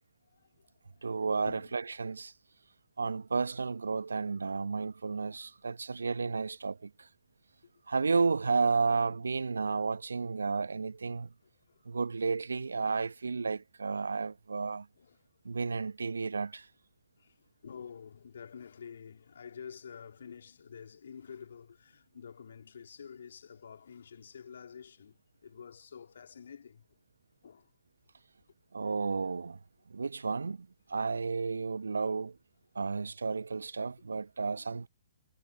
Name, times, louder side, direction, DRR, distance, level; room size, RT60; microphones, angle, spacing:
voice 1, 0.3-2.2 4.7-4.9 7.9-8.0 11.4-11.8 13.9-14.1 14.5-14.7 14.9-15.3 17.2-27.0 27.4-27.7 34.8-34.9, left 7 dB, 65° left, 3.4 m, -49 dB
voice 2, 1.0-2.3 3.0-6.9 7.9-11.3 11.8-14.8 15.4-16.7 28.7-29.6 29.9-32.3 32.7-34.9, right 4 dB, 75° right, 1.4 m, -32 dB
figure-of-eight pair, 125°, 0 cm